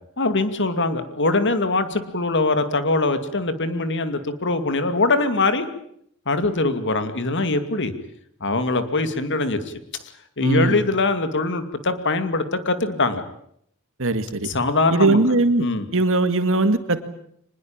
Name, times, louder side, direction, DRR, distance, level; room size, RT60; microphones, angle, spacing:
voice 1, 0.2-5.7 6.3-7.9 8.4-9.6 10.4-13.2 14.4-15.2 15.6-15.9, left 2 dB, 55° left, 10 dB, 2.5 m, -22 dB
voice 2, 10.4-10.8 14.0-14.5 14.9-15.7 15.9-17.0, right 2 dB, 65° right, 10 dB, 2.2 m, -20 dB
24.5 x 21.0 x 8.9 m, 0.69 s
head